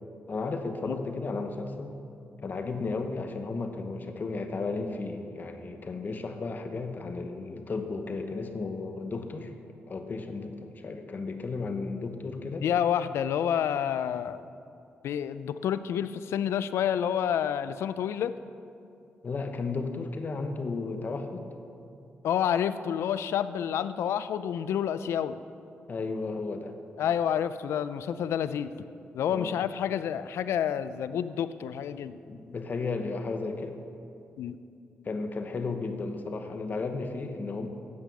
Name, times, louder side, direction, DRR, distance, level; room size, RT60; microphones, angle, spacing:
voice 1, 0.3-2.0 2.4-9.5 9.9-12.7 19.2-21.5 25.9-26.7 29.3-29.6 32.3-33.8 35.0-37.7, left 3 dB, 45° left, 6 dB, 1.0 m, -34 dB
voice 2, 12.6-14.4 15.0-18.3 22.2-25.4 27.0-28.7 29.1-32.2 34.4-34.6, left 9 dB, 90° left, 13 dB, 0.4 m, -29 dB
9.6 x 8.3 x 7.0 m, 2.6 s
cardioid pair, 90°, 4 cm